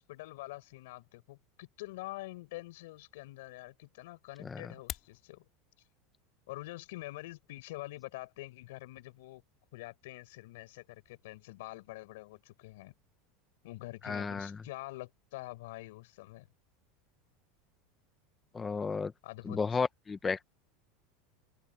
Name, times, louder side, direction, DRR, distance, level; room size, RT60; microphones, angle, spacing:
voice 1, 0.0-5.5 6.5-9.4 9.7-12.9 13.6-16.5 19.2-19.8, left 19 dB, 80° left, 4.3 m, -46 dB
sound 1, 4.6-5.2, left 11 dB, 35° left, 2.0 m, -42 dB
voice 2, 14.0-14.6 18.5-19.1 19.4-20.5, left 5 dB, 15° left, 0.8 m, -33 dB
open air
supercardioid pair, 155°, 0 cm